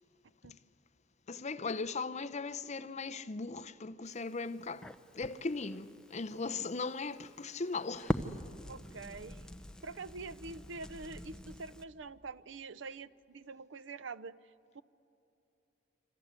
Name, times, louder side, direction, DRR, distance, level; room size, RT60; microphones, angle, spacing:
voice 1, 1.3-8.3, left 4 dB, 35° left, 0.6 m, -38 dB
Crackle, 4.0-11.8, equal, 5° left, 0.8 m, -43 dB
voice 2, 8.7-9.5 9.8-14.4 14.7-14.8, right 4 dB, 75° right, 0.7 m, -45 dB
27.0 x 26.0 x 8.2 m
head